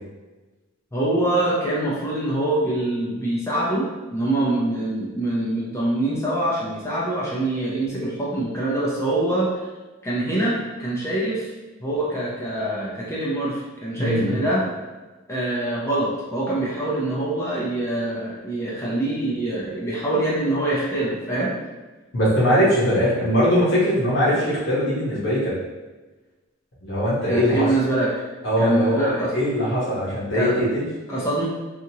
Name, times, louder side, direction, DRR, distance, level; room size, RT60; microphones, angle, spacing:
voice 1, 0.9-9.5 10.0-11.5 11.8-14.7 15.3-21.5 27.3-28.1 28.6-29.4 30.3-30.6 31.1-31.4, right 1 dB, 15° left, -7 dB, 0.5 m, -24 dB
voice 2, 14.0-14.4 22.1-25.5 26.8-27.7 28.4-30.9, equal, 60° left, -9 dB, 0.9 m, -21 dB
2.8 x 2.4 x 2.7 m, 1.2 s
head